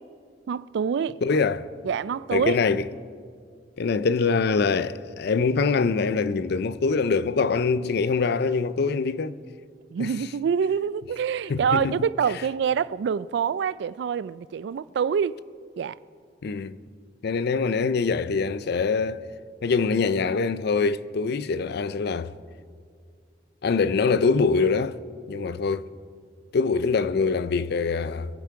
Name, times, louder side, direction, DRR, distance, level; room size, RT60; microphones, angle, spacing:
voice 1, 0.5-1.2 1.8-2.6 9.9-15.4 15.8-16.0, right 7 dB, 65° right, 0.3 m, -26 dB
voice 2, 1.2-1.7 2.3-2.8 3.8-9.4 10.0-10.1 11.5-12.1 16.4-16.8 17.2-19.2 19.6-22.3 23.6-25.0 25.3-25.9 26.5-28.3, left 4 dB, 60° left, 0.5 m, -24 dB
22.5 x 8.2 x 4.7 m
head